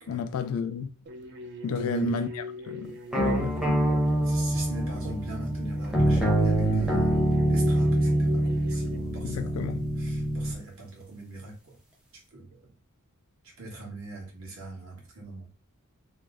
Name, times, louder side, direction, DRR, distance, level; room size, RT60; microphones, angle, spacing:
voice 1, 0.1-0.9 1.6-3.8 9.2-9.9, left 6 dB, 75° left, 0.3 m, -32 dB
sound 1, 1.1-9.0, left 1 dB, 50° right, 0.5 m, -42 dB
voice 2, 1.7-2.1 4.2-9.6 10.0-11.8 12.3-12.6 13.4-15.5, right 2 dB, 65° right, 1.3 m, -40 dB
sound 2, 3.1-10.6, right 1 dB, 5° right, 0.6 m, -25 dB
3.0 x 2.0 x 3.5 m
head